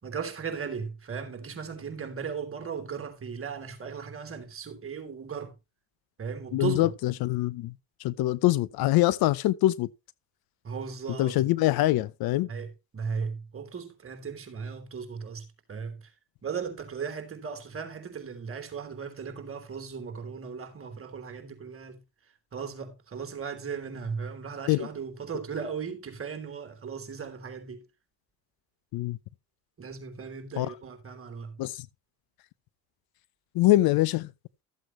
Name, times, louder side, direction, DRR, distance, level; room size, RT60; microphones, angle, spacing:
voice 1, 0.0-5.5 6.2-6.9 10.6-11.4 12.5-12.7 12.9-16.1 16.4-22.0 22.5-27.8 29.8-31.6, right 6 dB, 30° right, 3.3 m, -37 dB
voice 2, 6.5-7.7 8.0-9.9 11.2-12.5 24.7-24.9 28.9-29.2 30.6-30.7 31.6-31.9 33.5-34.3, left 16 dB, 60° left, 0.7 m, -24 dB
13.5 x 7.9 x 3.1 m
supercardioid pair, 95°, 41 cm